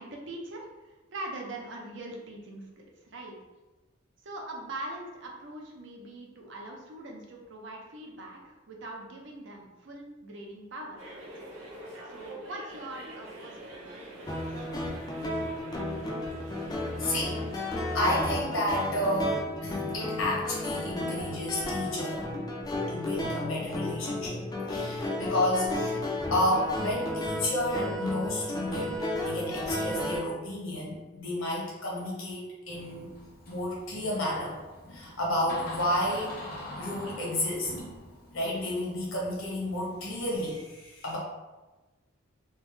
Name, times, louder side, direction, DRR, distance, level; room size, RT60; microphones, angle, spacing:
voice 1, 0.0-3.4 4.2-11.2 12.1-14.5, right 2 dB, 60° right, 0 dB, 0.6 m, -42 dB
sound 1, 11.0-18.3, right 1 dB, 80° right, 1.1 m, -45 dB
sound 2, 14.3-30.2, left 1 dB, 20° left, 0.3 m, -33 dB
voice 2, 17.0-17.4 17.9-22.2 22.9-24.4 24.7-26.0 26.3-33.1 33.5-34.5 34.9-36.4 36.8-37.7 38.3-41.2, left 1 dB, 75° left, -4 dB, 1.1 m, -31 dB
Door, 32.7-40.4, left 1 dB, 45° left, 0.7 m, -44 dB
3.5 x 2.0 x 3.1 m, 1.1 s
head